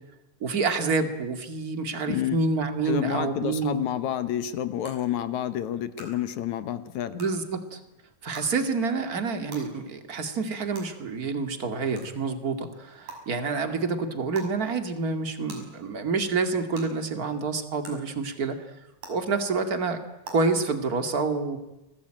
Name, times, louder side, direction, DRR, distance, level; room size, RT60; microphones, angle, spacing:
voice 1, 0.4-3.8 7.2-7.8 8.2-18.6 19.1-20.0 20.3-21.6, right 4 dB, 30° right, 7 dB, 2.4 m, -28 dB
voice 2, 2.1-2.4 2.9-7.2, left 11 dB, 70° left, 12 dB, 2.4 m, -29 dB
sound 1, 3.6-3.7 4.8-4.9 6.0-6.1 7.2-7.3 8.3-8.5 9.5-9.6 10.7-10.8 12.0-12.1 13.1-13.2 14.3-14.5 15.5-15.6 16.7-16.8 17.8-17.9 19.0-19.1 20.2-20.3, right 4 dB, 75° right, 7.4 m, -41 dB
29.0 x 20.0 x 9.0 m, 0.97 s
omnidirectional pair, 3.6 m